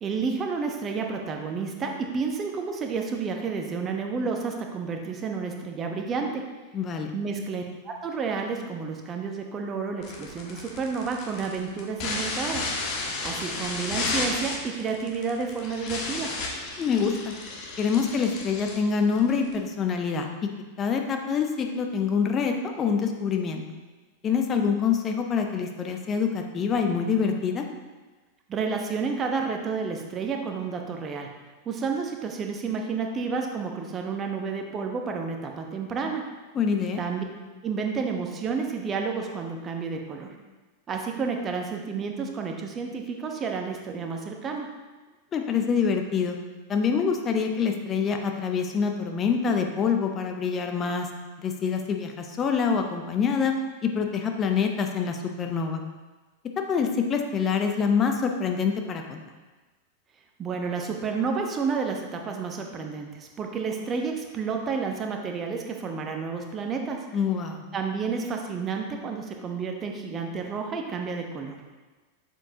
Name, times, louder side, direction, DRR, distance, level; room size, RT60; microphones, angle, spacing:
voice 1, 0.0-6.5 7.1-12.7 13.2-16.3 28.5-31.3 31.7-36.3 37.0-37.2 37.6-40.3 40.9-44.7 60.4-67.1 67.7-71.6, right 5 dB, 25° right, 3 dB, 1.0 m, -30 dB
voice 2, 6.7-7.1 16.8-17.3 17.8-20.3 20.8-23.6 24.2-27.6 36.5-37.0 45.3-46.4 46.7-51.1 51.4-53.5 53.8-55.8 56.7-59.2 67.1-67.6, left 6 dB, 25° left, 4 dB, 0.8 m, -25 dB
sound 1, 10.0-19.6, left 3 dB, 40° left, 1.4 m, -33 dB
7.2 x 7.0 x 2.8 m, 1.3 s
figure-of-eight pair, 90°, 0 cm